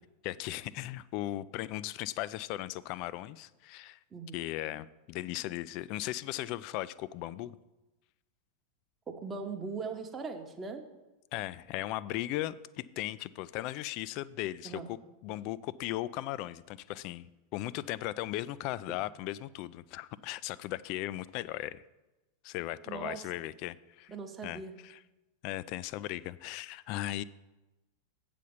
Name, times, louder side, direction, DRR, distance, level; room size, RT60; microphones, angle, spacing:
voice 1, 0.2-4.0 4.3-7.6 11.3-15.0 15.2-21.8 22.4-24.1 24.4-25.0 25.4-27.2, left 15 dB, 45° left, 18 dB, 0.3 m, -37 dB
voice 2, 4.1-4.4 9.1-10.8 14.6-14.9 22.9-23.5 24.1-24.7, right 4 dB, 15° right, 3 dB, 1.0 m, -40 dB
8.4 x 5.1 x 7.0 m, 1.0 s
figure-of-eight pair, 90°, 0 cm